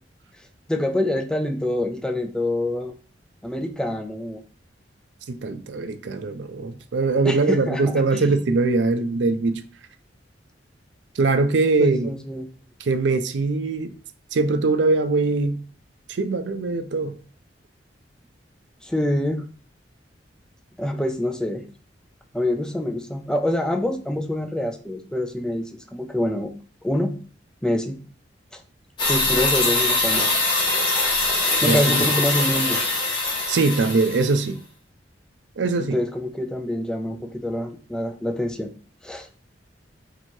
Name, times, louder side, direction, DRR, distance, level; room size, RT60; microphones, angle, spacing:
voice 1, 0.7-2.9 3.4-4.4 7.2-8.4 11.8-12.5 18.8-19.4 20.8-21.6 22.3-26.5 26.8-27.1 27.6-28.0 28.5-28.6 29.0-30.4 31.6-32.8 35.9-38.7 39.0-39.3, left 1 dB, 5° left, 0.4 m, -26 dB
voice 2, 5.3-9.6 11.2-12.1 12.8-13.9 14.3-15.6 16.1-17.2 31.6-32.0 33.5-34.6 35.6-36.0, right 3 dB, 75° right, 0.4 m, -22 dB
sound 1, 29.0-34.4, left 2 dB, 25° left, 1.2 m, -22 dB
3.0 x 2.7 x 4.4 m
head